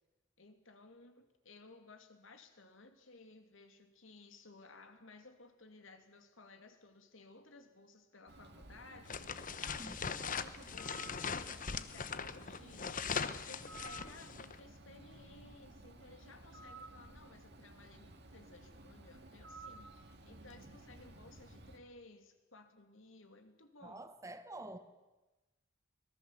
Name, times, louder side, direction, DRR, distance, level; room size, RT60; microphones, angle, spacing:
voice 1, 0.4-24.1, left 3 dB, 70° left, 6 dB, 2.8 m, -58 dB
Bird, 8.3-21.8, right 2 dB, 55° right, 2.3 m, -55 dB
sound 1, 9.1-14.5, left 6 dB, 40° left, 1.0 m, -40 dB
voice 2, 23.8-24.8, right 2 dB, 15° right, 9 dB, 1.2 m, -47 dB
25.0 x 19.0 x 7.6 m, 1.1 s
head